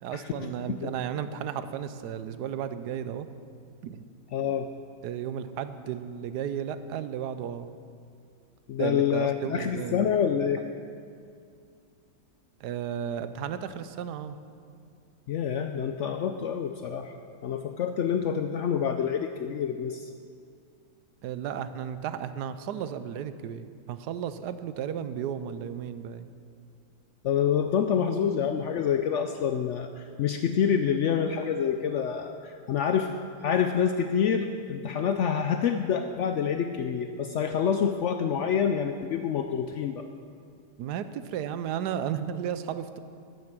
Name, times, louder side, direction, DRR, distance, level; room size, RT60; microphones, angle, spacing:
voice 1, 0.0-3.3 3.8-4.1 5.0-7.8 8.8-10.1 12.6-14.4 21.2-26.3 40.8-43.0, right 9 dB, 75° right, 12 dB, 1.1 m, -34 dB
voice 2, 4.3-4.6 8.7-10.6 15.3-17.1 17.4-20.1 27.2-33.1 33.4-40.1, left 7 dB, 85° left, 7 dB, 0.6 m, -27 dB
12.5 x 9.6 x 6.0 m, 2.3 s
omnidirectional pair, 1.8 m